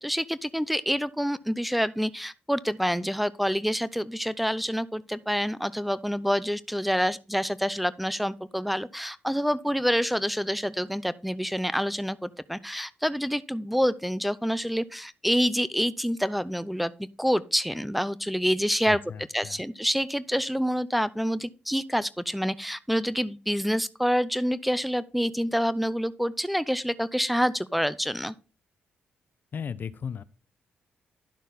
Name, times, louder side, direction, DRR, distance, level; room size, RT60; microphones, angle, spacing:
voice 1, 0.0-19.0 19.3-28.3, equal, ahead, 0.6 m, -27 dB
voice 2, 18.8-19.6 29.5-30.2, left 7 dB, 55° left, 0.6 m, -36 dB
11.5 x 6.3 x 4.0 m
supercardioid pair, 60°, 4 cm